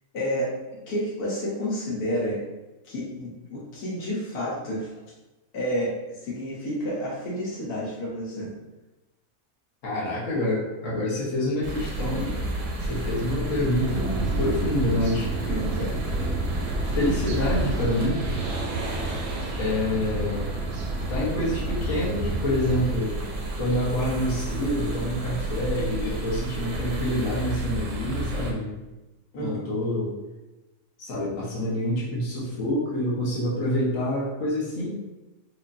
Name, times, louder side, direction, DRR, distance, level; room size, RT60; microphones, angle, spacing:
voice 1, 0.1-0.5 0.9-2.4 2.8-4.9 5.5-8.5 15.5-15.9 29.3-29.6, equal, 85° left, -5 dB, 1.5 m, -30 dB
voice 2, 9.8-12.4 12.8-15.3 16.9-18.3 19.6-20.5 21.1-23.2 23.6-28.7 29.4-30.1 31.0-34.9, left 1 dB, 65° left, -6 dB, 1.4 m, -27 dB
sound 1, 11.6-28.5, right 1 dB, 90° right, 1.3 m, -31 dB
sound 2, 13.8-22.9, right 2 dB, 65° right, 0.6 m, -31 dB
4.9 x 2.6 x 2.6 m, 1.0 s
omnidirectional pair, 1.6 m